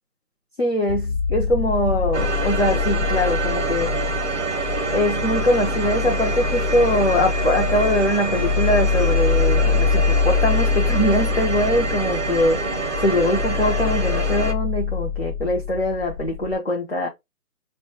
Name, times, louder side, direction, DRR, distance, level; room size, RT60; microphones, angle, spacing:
voice 1, 0.6-3.9 4.9-12.6 13.0-17.1, left 1 dB, 45° left, 0.5 m, -22 dB
sound 1, 0.9-16.6, left 6 dB, 65° left, 0.8 m, -24 dB
sound 2, 2.1-14.5, right 3 dB, 50° right, 0.6 m, -26 dB
3.7 x 2.2 x 2.6 m
figure-of-eight pair, 165°, 47 cm